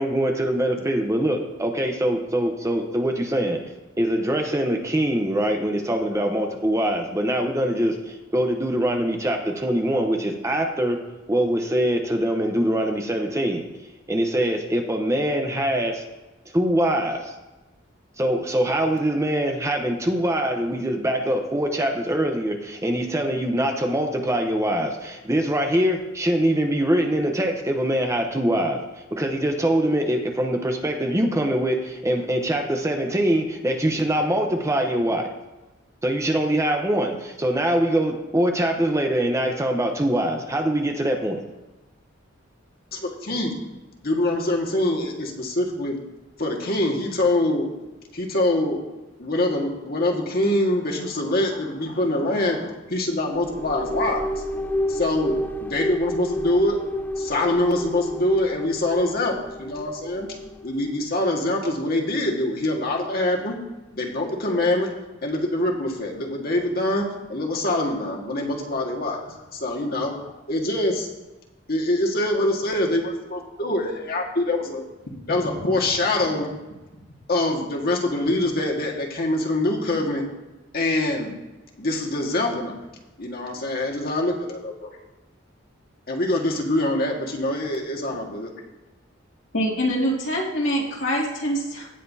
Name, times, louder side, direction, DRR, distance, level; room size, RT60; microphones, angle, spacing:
voice 1, 0.0-3.6 4.0-11.0 11.3-13.7 14.1-16.0 16.5-17.3 18.2-35.3 36.0-41.4, right 1 dB, 15° right, 3 dB, 0.8 m, -23 dB
voice 2, 42.9-43.6 44.0-46.0 46.4-47.7 48.1-48.8 49.2-54.4 54.9-55.3 55.6-56.8 57.2-60.3 60.6-63.5 63.9-64.9 65.2-67.0 67.3-71.1 71.7-76.5 77.3-80.2 80.7-81.3 81.8-82.7 83.2-84.9 86.1-88.5, left 1 dB, 50° left, 0 dB, 1.7 m, -24 dB
sound 1, 53.3-60.9, left 1 dB, 10° left, 0.4 m, -31 dB
voice 3, 89.5-92.0, equal, 70° left, -3 dB, 2.4 m, -25 dB
17.5 x 6.7 x 2.8 m, 1.1 s
head